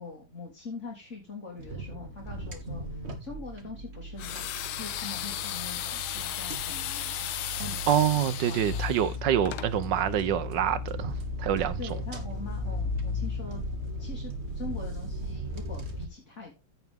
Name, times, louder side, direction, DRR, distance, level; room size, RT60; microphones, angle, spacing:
voice 1, 0.0-7.3 7.6-8.2 8.5-8.9 11.8-13.6 14.0-16.6, left 4 dB, 35° left, 3.4 m, -43 dB
sound 1, 1.6-16.1, left 1 dB, 35° right, 1.9 m, -36 dB
sound 2, 4.2-9.7, left 12 dB, 80° left, 1.6 m, -35 dB
voice 2, 7.9-11.8, right 10 dB, 60° right, 1.5 m, -26 dB
15.0 x 6.1 x 3.6 m
omnidirectional pair, 2.3 m